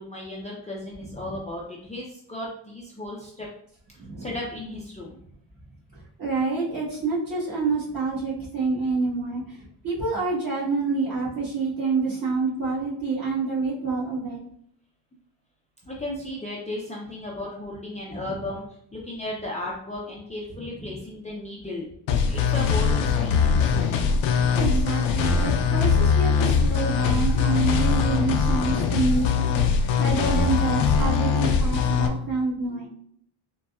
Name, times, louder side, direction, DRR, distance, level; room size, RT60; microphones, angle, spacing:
voice 1, 0.0-3.5 4.2-5.2 15.9-21.9 22.3-23.8, left 1 dB, 15° left, -4 dB, 0.4 m, -35 dB
voice 2, 1.0-1.3 4.0-4.3 5.9-14.4 18.1-18.3 20.8-21.0 23.3-23.6 24.5-29.5 30.0-32.9, right 4 dB, 45° right, -6 dB, 1.4 m, -28 dB
sound 1, 22.1-32.1, left 6 dB, 70° left, 0.5 m, -22 dB
4.0 x 2.2 x 2.3 m, 0.65 s
cardioid pair, 110°, 49 cm